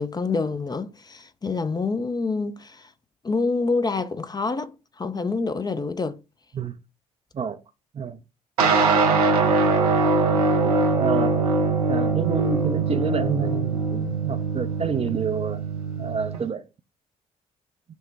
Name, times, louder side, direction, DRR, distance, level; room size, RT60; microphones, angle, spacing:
voice 1, 0.0-2.9 3.2-4.7 5.0-6.2, left 4 dB, 20° left, 0.5 m, -27 dB
sound 1, 8.6-16.4, right 3 dB, 85° right, 0.6 m, -22 dB
voice 2, 10.6-11.5 11.9-15.6 16.0-16.6, right 6 dB, 30° right, 0.5 m, -28 dB
6.1 x 2.1 x 3.2 m
figure-of-eight pair, 45°, 19 cm